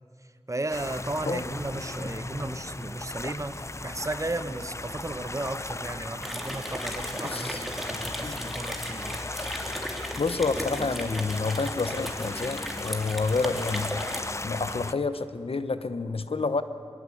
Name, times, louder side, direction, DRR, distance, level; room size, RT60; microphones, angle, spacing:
voice 1, 0.5-9.2, right 2 dB, 35° right, 11 dB, 1.1 m, -35 dB
sound 1, 0.7-14.9, left 2 dB, 30° left, 0.6 m, -37 dB
sound 2, 6.2-14.2, equal, ahead, 3.3 m, -36 dB
voice 2, 7.2-7.6 8.2-8.5 10.2-14.0 14.4-16.6, left 4 dB, 75° left, 11 dB, 1.0 m, -29 dB
23.0 x 21.5 x 8.6 m, 2.3 s
wide cardioid pair, 50°, 10 cm